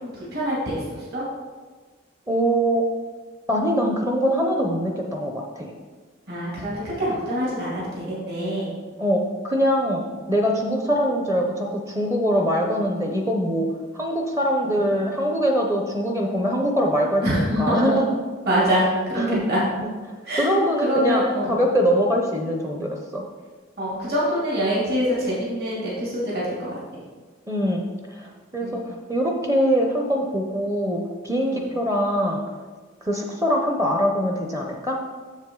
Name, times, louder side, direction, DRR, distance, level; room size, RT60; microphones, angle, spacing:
voice 1, 0.0-1.2 6.3-8.7 10.2-10.3 14.6-14.9 17.2-18.0 18.5-19.2 19.5-19.6 20.2-20.5 20.8-21.7 23.8-26.8 28.6-28.9 31.4-31.7, equal, 50° right, -7 dB, 2.5 m, -25 dB
voice 2, 2.3-2.8 3.5-5.7 9.0-13.7 13.9-18.0 19.2-19.4 19.8-19.9 20.4-21.2 21.5-23.2 27.5-27.8 28.1-32.4 33.0-35.0, equal, 15° right, 1 dB, 0.6 m, -23 dB
7.3 x 7.0 x 3.8 m, 1.4 s
head